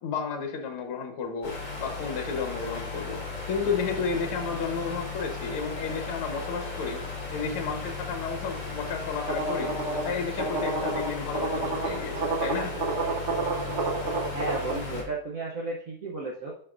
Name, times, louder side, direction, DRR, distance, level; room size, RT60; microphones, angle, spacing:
voice 1, 0.0-7.0 7.3-9.8 10.0-12.8, left 5 dB, 75° left, 4 dB, 2.0 m, -32 dB
sound 1, 1.4-15.0, left 4 dB, 40° left, 3.7 m, -36 dB
sound 2, 9.3-14.7, right 3 dB, 50° right, 0.8 m, -30 dB
voice 2, 14.3-16.5, right 2 dB, 85° right, -2 dB, 0.7 m, -34 dB
11.0 x 4.5 x 2.5 m, 0.63 s
omnidirectional pair, 2.4 m